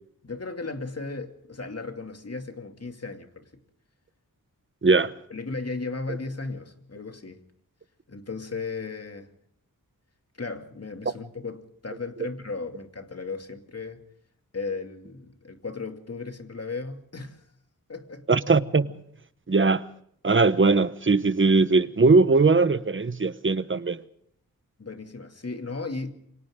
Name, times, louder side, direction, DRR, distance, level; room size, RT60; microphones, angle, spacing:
voice 1, 0.2-3.6 5.3-7.4 8.1-9.3 10.4-14.0 14.5-17.4 17.9-18.3 24.8-26.1, left 3 dB, 45° left, 2.6 m, -35 dB
voice 2, 4.8-5.1 18.3-18.9 19.5-19.9 20.2-24.0, right 3 dB, 35° right, 1.1 m, -20 dB
28.5 x 25.0 x 3.8 m
wide cardioid pair, 90°, 35 cm